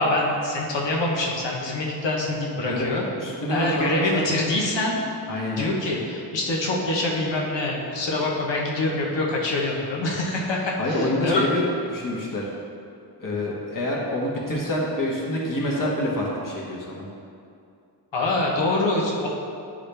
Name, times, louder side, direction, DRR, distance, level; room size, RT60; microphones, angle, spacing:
voice 1, 0.0-3.0 3.5-5.0 5.5-11.5 18.1-19.3, left 2 dB, 85° left, -2 dB, 1.1 m, -25 dB
voice 2, 3.2-4.3 5.3-5.7 10.8-11.6 11.9-12.5 13.2-17.1, left 1 dB, 50° left, -3 dB, 1.3 m, -27 dB
10.0 x 3.8 x 3.4 m, 2.5 s
wide cardioid pair, 90°, 42 cm